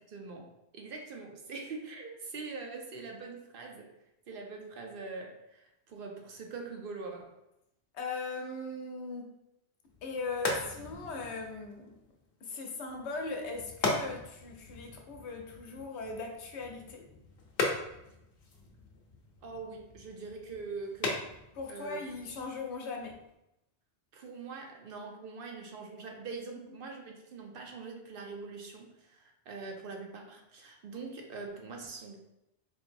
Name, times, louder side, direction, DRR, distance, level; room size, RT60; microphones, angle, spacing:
voice 1, 0.0-3.9 4.3-7.3 19.4-21.3 21.7-22.3 24.1-32.2, right 4 dB, 60° right, 2 dB, 0.7 m, -43 dB
voice 2, 7.9-9.4 10.0-12.0 12.4-17.1 21.6-23.2, left 3 dB, 85° left, 2 dB, 1.0 m, -39 dB
sound 1, 9.9-23.3, left 2 dB, 65° left, 0.9 m, -39 dB
4.4 x 2.9 x 2.5 m, 0.87 s
omnidirectional pair, 1.1 m